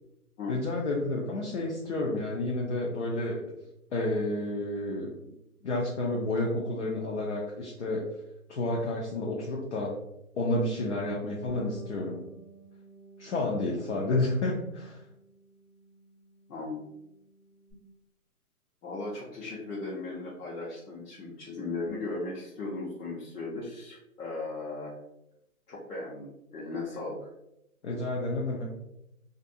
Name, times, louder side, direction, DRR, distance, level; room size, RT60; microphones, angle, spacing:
voice 1, 0.5-3.4 3.9-5.1 5.6-8.0 8.5-9.9 10.4-12.2 13.2-15.0 27.8-28.7, left 2 dB, 55° left, -3 dB, 0.5 m, -30 dB
Bass guitar, 11.5-17.7, right 1 dB, 5° right, 0.6 m, -51 dB
voice 2, 16.5-16.9 18.8-24.9 25.7-27.3, left 3 dB, 75° left, -5 dB, 0.9 m, -37 dB
2.5 x 2.3 x 2.6 m, 0.85 s
hypercardioid pair, 165°, 45 cm